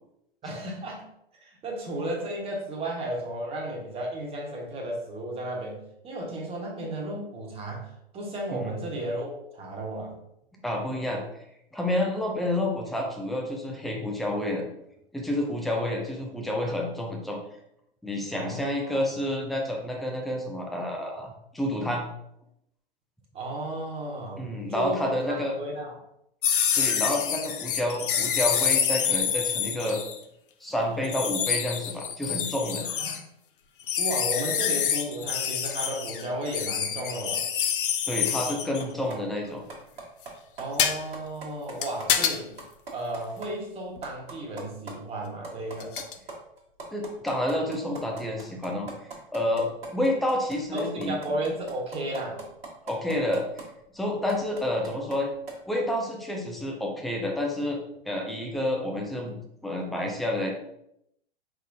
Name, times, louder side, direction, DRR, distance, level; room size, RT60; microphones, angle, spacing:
voice 1, 0.4-1.0 1.4-10.1 18.3-19.0 23.3-25.9 32.8-33.2 34.0-37.4 40.6-42.5 42.9-46.0 50.7-52.4, right 1 dB, 20° right, -1 dB, 1.2 m, -34 dB
voice 2, 10.6-11.2 11.7-14.6 15.1-17.4 18.0-22.1 24.4-25.5 26.8-30.0 30.6-32.9 38.1-39.6 46.9-48.9 49.3-51.2 52.9-53.5 53.9-55.3 55.7-57.8 58.1-59.4 59.6-60.5, left 1 dB, ahead, 1 dB, 0.3 m, -29 dB
sound 1, 26.4-30.2 31.0-33.2 33.9-38.8 40.8-41.0 41.8-42.4 44.0-44.1 45.8-46.1, left 8 dB, 55° left, 0.6 m, -27 dB
sound 2, 38.8-39.2 39.5-40.3 40.6-40.7 40.9-41.7 42.0-42.1 42.4-43.5 43.8-43.9 44.0-44.9 45.2-53.6 54.1-55.2 55.5-55.6, right 4 dB, 70° right, 1.4 m, -40 dB
4.9 x 3.8 x 2.6 m, 0.77 s
figure-of-eight pair, 100°, 30 cm